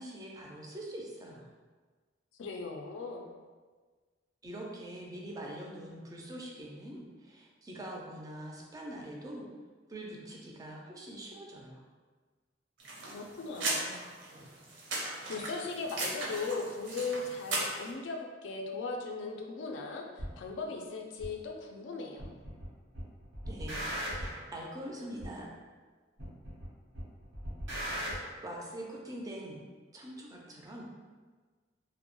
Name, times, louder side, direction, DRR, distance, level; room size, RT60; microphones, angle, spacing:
voice 1, 0.0-1.5 4.4-9.5 9.9-11.8 23.5-23.8 24.1-24.2 24.5-25.5 28.4-29.6 29.9-30.9, right 1 dB, 20° right, -2 dB, 0.3 m, -43 dB
voice 2, 2.4-3.3 13.1-14.0 15.3-22.3, left 3 dB, 80° left, 2 dB, 0.3 m, -38 dB
sound 1, 12.8-17.9, right 2 dB, 70° right, 0.6 m, -37 dB
sound 2, 20.2-20.3 21.2-21.3 22.2-22.7 22.9-24.4 25.2-25.3 26.2-26.7 26.9-28.2, equal, 90° right, 0.9 m, -37 dB
2.2 x 2.0 x 2.9 m, 1.4 s
head